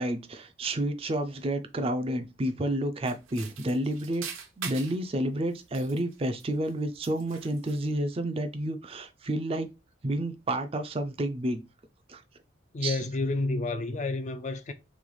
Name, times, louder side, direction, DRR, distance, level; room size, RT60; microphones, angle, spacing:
voice 1, 0.0-4.2 4.6-9.7 10.0-11.6 12.1-12.2 12.8-13.0, right 1 dB, 30° right, 0.4 m, -30 dB
sound 1, 3.0-5.0 5.6-6.7 7.0-7.9, right 7 dB, 85° right, 0.8 m, -42 dB
voice 2, 12.7-14.7, left 2 dB, 35° left, 0.4 m, -30 dB
3.4 x 3.2 x 3.9 m
head